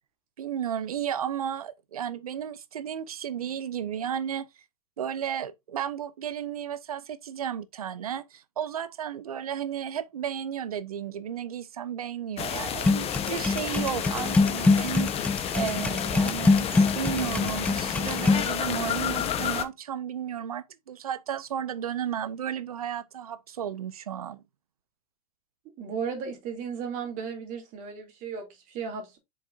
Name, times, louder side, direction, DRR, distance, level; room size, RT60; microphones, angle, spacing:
voice 1, 0.4-4.5 5.0-24.4, right 9 dB, 75° right, 0.7 m, -33 dB
sound 1, 12.4-19.6, left 9 dB, 30° left, 1.2 m, -31 dB
sound 2, 12.8-18.5, left 3 dB, 5° left, 0.4 m, -24 dB
voice 2, 25.8-29.2, right 6 dB, 45° right, 2.9 m, -35 dB
7.0 x 5.4 x 2.7 m
figure-of-eight pair, 85°, 19 cm